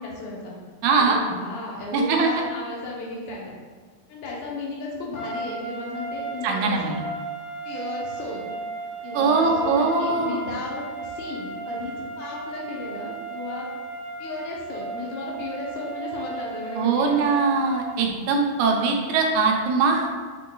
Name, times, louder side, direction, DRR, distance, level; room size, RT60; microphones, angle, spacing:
voice 1, 0.0-3.5 4.1-6.9 7.6-8.5 9.0-13.7 14.2-17.2, left 3 dB, 80° left, -3 dB, 2.3 m, -34 dB
voice 2, 0.8-1.2 1.9-2.3 6.4-7.0 9.1-10.4 16.8-20.1, right 4 dB, 85° right, 1 dB, 2.1 m, -21 dB
sound 1, 5.1-18.0, right 3 dB, 55° left, 2.4 m, -35 dB
5.9 x 3.7 x 2.3 m, 1.5 s
omnidirectional pair, 3.5 m